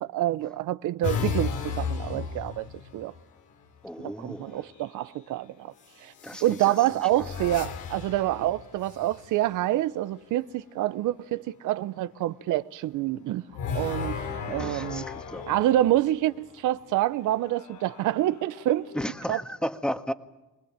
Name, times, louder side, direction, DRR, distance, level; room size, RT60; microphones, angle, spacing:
voice 1, 0.1-2.7 2.9-3.1 4.0-5.7 6.0-6.1 6.4-13.4 13.7-14.2 14.5-15.0 15.5-18.9 19.3-19.4, right 14 dB, 90° right, 0.8 m, -27 dB
sound 1, 1.0-3.3 4.6-5.0 6.2-9.6 13.5-16.5 17.2-19.1, left 6 dB, 80° left, 2.9 m, -35 dB
voice 2, 3.8-4.6 6.2-6.7 7.2-7.3 14.5-15.5 18.9-20.1, equal, 5° left, 1.6 m, -34 dB
25.0 x 19.5 x 9.0 m
cardioid pair, 90°, 30 cm